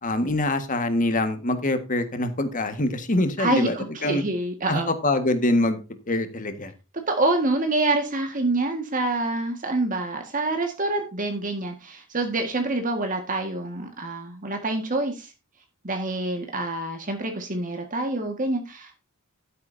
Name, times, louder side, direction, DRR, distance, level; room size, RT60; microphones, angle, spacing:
voice 1, 0.0-3.7 4.0-4.2 4.7-5.8 6.1-6.7, left 1 dB, 40° left, 9 dB, 1.6 m, -24 dB
voice 2, 3.4-4.9 7.1-15.3 15.8-18.9, right 2 dB, 40° right, 4 dB, 1.7 m, -26 dB
12.0 x 9.5 x 2.7 m, 0.29 s
head